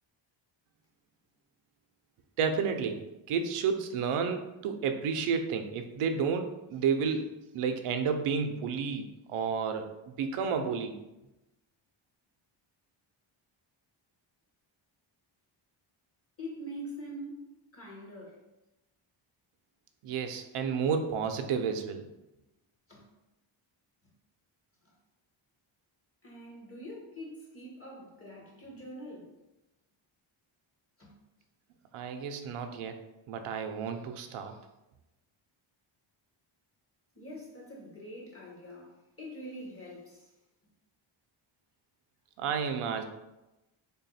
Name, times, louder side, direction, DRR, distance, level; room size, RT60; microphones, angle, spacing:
voice 1, 2.4-3.0 3.3-11.0 20.0-22.0 31.9-33.0 33.3-34.6 42.4-43.0, right 6 dB, 90° right, 6 dB, 0.6 m, -31 dB
voice 2, 16.4-17.4 17.7-18.4 22.9-23.0 26.2-29.3 31.0-31.1 37.1-40.3, equal, 25° left, -4 dB, 1.2 m, -44 dB
3.4 x 2.3 x 4.0 m, 0.95 s
wide cardioid pair, 120°, 49 cm